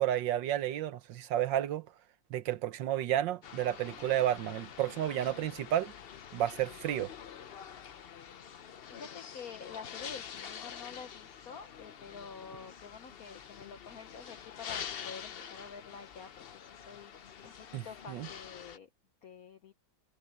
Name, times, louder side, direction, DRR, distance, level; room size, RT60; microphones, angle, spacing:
voice 1, 0.0-1.9 2.3-5.9 6.3-7.1 17.7-18.3, right 12 dB, 75° right, 1.5 m, -31 dB
sound 1, 3.4-18.8, left 8 dB, 85° left, 0.5 m, -46 dB
voice 2, 8.9-16.3 16.9-18.9 19.2-19.7, left 6 dB, 55° left, 1.3 m, -48 dB
omnidirectional pair, 2.1 m